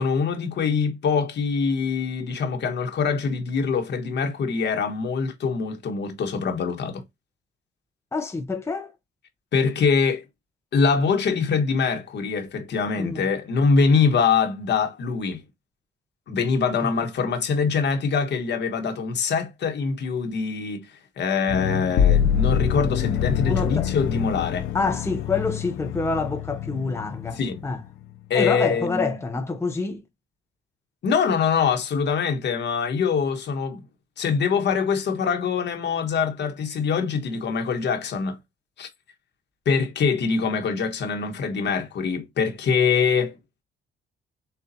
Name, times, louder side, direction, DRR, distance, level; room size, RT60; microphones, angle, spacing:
voice 1, 0.0-7.0 9.5-10.2 10.7-15.4 16.3-20.9 21.2-24.7 27.4-27.6 28.3-29.2 31.0-33.8 34.2-38.4 38.8-38.9 39.6-43.4, left 5 dB, 60° left, 1.2 m, -24 dB
voice 2, 8.1-8.9 13.0-13.2 23.5-23.9 24.7-27.8 28.3-30.0, left 4 dB, 15° left, 0.7 m, -27 dB
sound 1, 21.5-27.7, left 9 dB, 85° left, 0.6 m, -25 dB
6.8 x 2.5 x 2.7 m
cardioid pair, 90°, 20 cm